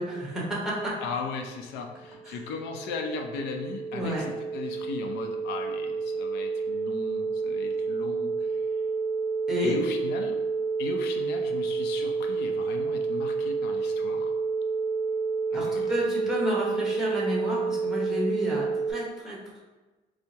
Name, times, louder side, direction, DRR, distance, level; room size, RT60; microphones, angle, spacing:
voice 1, 0.0-0.9 2.3-2.4 3.9-4.3 9.5-9.8 15.5-19.6, equal, 5° right, -5 dB, 1.1 m, -31 dB
voice 2, 1.0-8.6 9.6-10.4 10.8-14.3 15.5-15.9, left 4 dB, 90° left, 4 dB, 0.5 m, -37 dB
sound 1, 1.9-18.9, right 4 dB, 35° right, 0.4 m, -29 dB
4.5 x 2.0 x 2.7 m, 1.2 s
cardioid pair, 110°, 17 cm